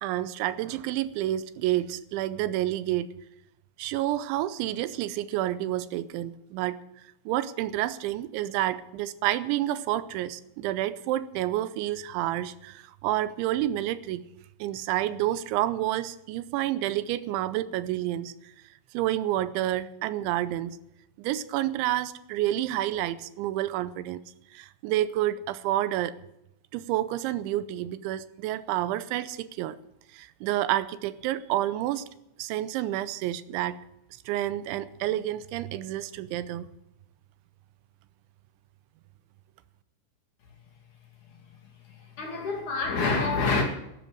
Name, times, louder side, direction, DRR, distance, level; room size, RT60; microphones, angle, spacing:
voice 1, 0.0-3.1 3.8-6.8 7.3-14.2 14.6-18.3 18.9-20.8 21.2-24.2 24.5-26.2 26.7-29.8 30.1-32.1 32.4-33.8 34.3-36.7, right 14 dB, 90° right, 14 dB, 3.1 m, -29 dB
voice 2, 41.8-43.6, left 3 dB, 45° left, 2 dB, 3.6 m, -27 dB
13.5 x 11.0 x 7.7 m, 0.84 s
omnidirectional pair, 5.3 m